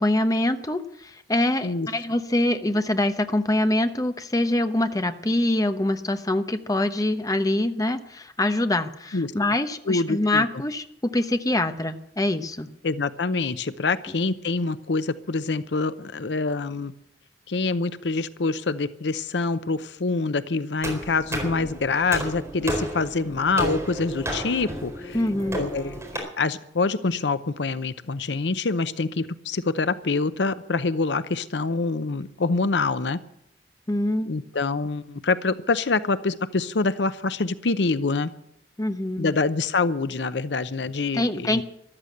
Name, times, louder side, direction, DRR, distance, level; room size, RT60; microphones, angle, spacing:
voice 1, 0.0-12.7 25.1-25.6 33.9-34.3 38.8-39.3 41.1-41.6, left 1 dB, 20° left, 8 dB, 1.0 m, -24 dB
voice 2, 9.9-10.4 12.8-16.9 17.5-25.2 25.5-33.2 34.3-38.3 39.2-41.6, left 3 dB, 75° left, 14 dB, 0.7 m, -26 dB
sound 1, 20.8-26.2, equal, 15° right, 4.3 m, -32 dB
13.5 x 12.5 x 7.9 m, 0.75 s
head